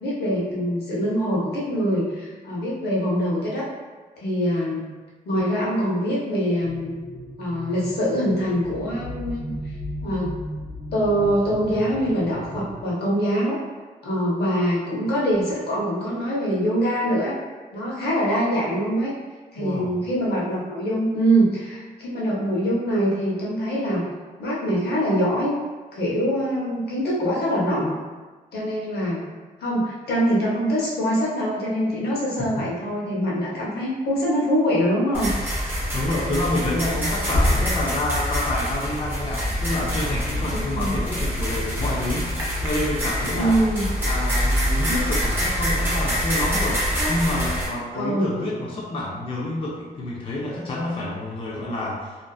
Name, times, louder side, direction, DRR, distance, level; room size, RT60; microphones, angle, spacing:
voice 1, 0.0-3.7 4.2-4.8 5.2-6.9 7.4-9.5 10.0-10.3 10.9-13.6 14.0-17.4 17.7-19.1 19.5-24.0 24.4-25.5 25.9-27.9 28.5-29.2 29.6-35.3 40.5-41.0 43.3-43.9 47.9-48.3, equal, 90° left, -5 dB, 0.8 m, -24 dB
sound 1, 6.6-12.9, equal, 55° right, 0.8 m, -36 dB
voice 2, 19.6-19.9 32.4-32.7 35.9-43.6 44.0-52.2, left 1 dB, 35° left, -4 dB, 0.4 m, -28 dB
sound 2, 35.1-47.7, equal, 15° right, 0.5 m, -25 dB
2.5 x 2.3 x 2.3 m, 1.3 s
wide cardioid pair, 175°, 16 cm